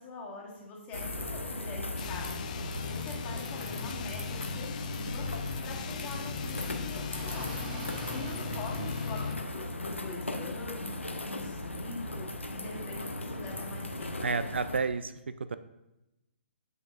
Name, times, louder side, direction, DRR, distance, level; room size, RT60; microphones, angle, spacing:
voice 1, 0.0-5.3 5.6-7.6 8.1-14.2, left 3 dB, 20° left, -2 dB, 1.7 m, -44 dB
sound 1, 0.9-14.8, left 2 dB, 85° left, 0.8 m, -38 dB
sound 2, 1.9-9.5, left 7 dB, 35° left, 0.4 m, -39 dB
sound 3, 2.3-9.2, right 1 dB, 40° right, 1.1 m, -46 dB
voice 2, 8.5-9.2 14.2-15.2 15.5-15.6, right 4 dB, 65° right, 13 dB, 0.4 m, -32 dB
7.9 x 7.0 x 2.5 m, 0.95 s
figure-of-eight pair, 130°, 6 cm